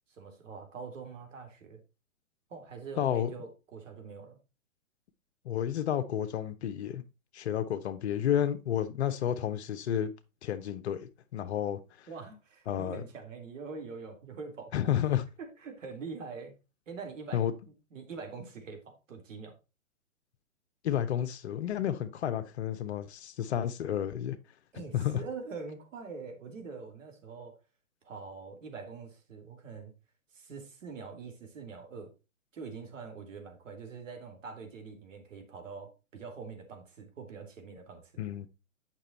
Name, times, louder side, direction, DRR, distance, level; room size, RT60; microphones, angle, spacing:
voice 1, 0.1-1.8 2.5-4.4 12.1-15.0 15.4-16.5 16.9-19.5 24.7-27.6 28.0-29.9 30.3-32.1 32.5-38.2, right 5 dB, 65° right, 3.5 m, -44 dB
voice 2, 2.9-3.3 5.4-7.0 7.3-10.1 10.4-12.1 12.7-13.0 14.7-15.2 17.3-17.5 20.8-24.4 24.9-25.2 38.2-38.5, left 10 dB, 55° left, 1.1 m, -31 dB
9.0 x 6.2 x 4.2 m
hypercardioid pair, 135°, 41 cm